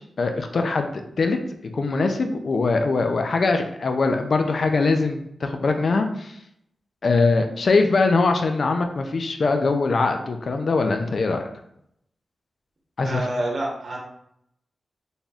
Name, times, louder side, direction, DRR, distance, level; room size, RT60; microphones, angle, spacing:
voice 1, 0.0-1.4 1.7-6.4 7.0-11.4 13.0-13.3, left 3 dB, 60° left, 5 dB, 0.4 m, -22 dB
voice 2, 13.0-14.0, right 1 dB, 55° right, -2 dB, 0.9 m, -27 dB
4.1 x 3.5 x 2.3 m, 0.73 s
wide cardioid pair, 100°, 0 cm